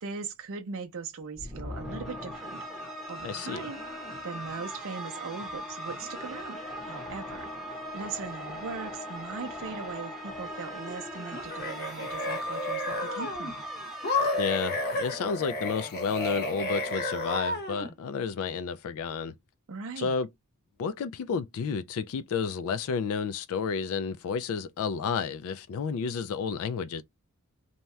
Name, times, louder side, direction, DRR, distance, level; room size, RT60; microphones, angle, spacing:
voice 1, 0.0-2.6 3.1-3.8 4.2-7.5 7.9-13.6 19.7-20.1, right 5 dB, 65° right, 0.5 m, -39 dB
sound 1, 1.4-15.7, equal, ahead, 0.9 m, -39 dB
voice 2, 3.2-3.6 14.4-19.3 20.0-20.3 20.8-27.0, left 6 dB, 65° left, 0.3 m, -31 dB
sound 2, 11.3-13.5 14.0-17.9, left 1 dB, 45° left, 0.8 m, -31 dB
2.7 x 2.2 x 3.1 m
head